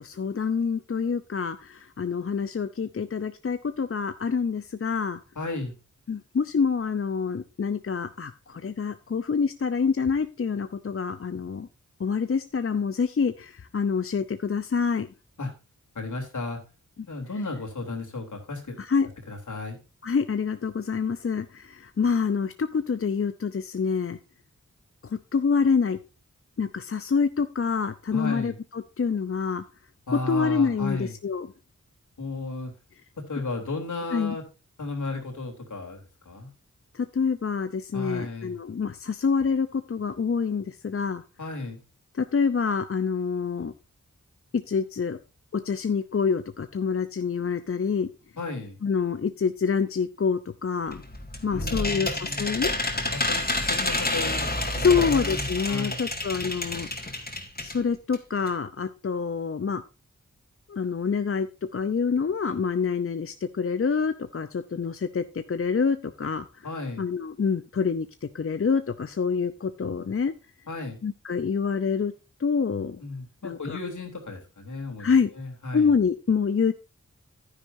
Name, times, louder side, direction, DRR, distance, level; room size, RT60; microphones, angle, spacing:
voice 1, 0.0-5.2 6.1-11.7 12.0-15.1 18.8-19.1 20.0-24.2 25.0-26.0 26.6-29.6 30.1-31.5 34.1-34.4 36.9-41.2 42.1-43.7 44.5-45.2 45.5-48.1 48.8-51.0 51.4-52.7 54.8-56.9 57.6-59.8 60.7-61.5 61.7-66.7 67.0-70.3 71.0-72.1 72.4-73.0 73.4-73.8 75.0-75.3 75.7-76.7, left 5 dB, 45° left, 10 dB, 0.7 m, -26 dB
voice 2, 5.3-5.7 15.4-15.5 15.9-16.6 17.1-18.8 19.3-19.8 28.1-28.5 30.1-31.1 32.2-32.7 33.2-34.4 34.8-36.5 37.9-38.6 41.4-41.8 48.4-48.8 51.5-52.4 53.1-56.0 66.6-67.0 70.7-71.0 73.0-75.9, left 3 dB, 75° left, 1 dB, 3.4 m, -34 dB
sound 1, 50.9-57.8 58.1-58.2 58.5-58.6, left 2 dB, 30° left, 2.4 m, -29 dB
11.0 x 10.0 x 2.7 m, 0.31 s
cardioid pair, 55°, 31 cm